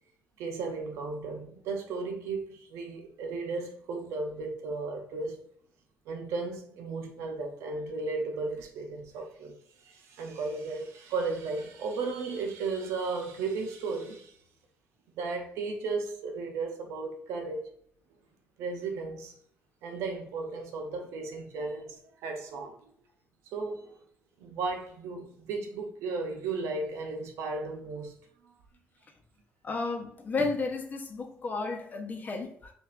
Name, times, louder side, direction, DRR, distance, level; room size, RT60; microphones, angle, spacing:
voice 1, 0.4-5.4 6.1-9.6 9.8-14.3 15.1-17.7 18.6-19.3 19.8-22.8 23.5-24.0 24.4-28.2, right 3 dB, 90° right, 0.7 m, -35 dB
voice 2, 29.6-32.7, left 3 dB, 40° left, 0.8 m, -32 dB
5.8 x 2.6 x 2.5 m
cardioid pair, 95°, 5 cm